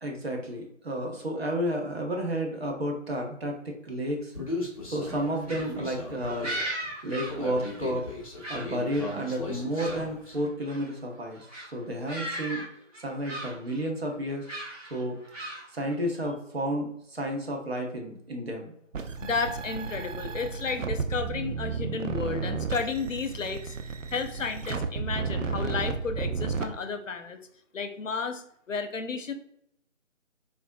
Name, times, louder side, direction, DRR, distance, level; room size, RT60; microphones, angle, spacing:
voice 1, 0.0-4.3 4.9-6.5 7.0-8.0 8.5-14.4 14.9-18.7, equal, 55° right, 1 dB, 0.8 m, -32 dB
Human voice, 4.3-10.3, left 2 dB, 30° left, 0.6 m, -37 dB
sound 1, 5.0-8.1 8.4-10.0 10.3-10.9 11.3-11.7 12.0-12.7 12.9-13.8 14.4-15.9, right 1 dB, 30° right, 1.5 m, -38 dB
sound 2, 18.9-26.7, right 5 dB, 80° right, 0.5 m, -33 dB
voice 2, 19.2-23.8 24.1-27.4 27.7-29.3, left 5 dB, 80° left, 7 dB, 0.6 m, -32 dB
3.4 x 2.5 x 2.6 m, 0.71 s
figure-of-eight pair, 155°, 38 cm